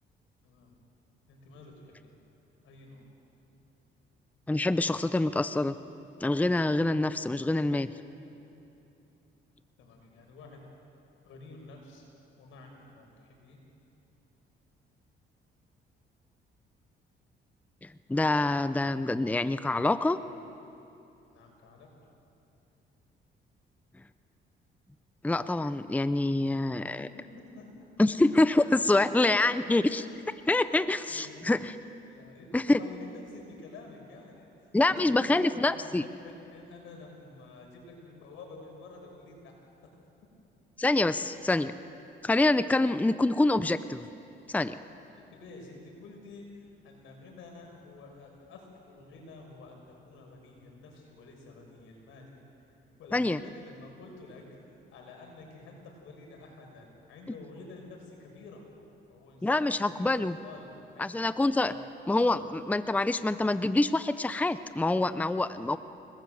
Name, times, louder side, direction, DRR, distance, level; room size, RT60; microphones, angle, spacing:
voice 1, 0.4-0.7 1.3-2.1 2.6-3.1 9.8-10.6 11.2-12.0 12.4-13.6 21.2-21.9 27.0-27.1 27.5-27.7 29.6-29.7 31.1-31.5 32.1-39.5 45.3-52.3 52.6-58.7 59.1-61.1 61.6-61.8, left 3 dB, 90° left, 1 dB, 6.0 m, -49 dB
voice 2, 4.5-5.8 6.2-7.9 17.8-20.2 25.2-27.1 28.0-30.0 30.5-31.7 32.5-32.8 34.7-36.0 40.8-41.7 42.2-44.1 44.5-44.8 53.1-53.4 59.4-60.4 61.0-61.7 62.1-65.8, left 2 dB, 5° left, 13 dB, 0.6 m, -26 dB
28.0 x 19.5 x 7.9 m, 2.9 s
cardioid pair, 90°, 20 cm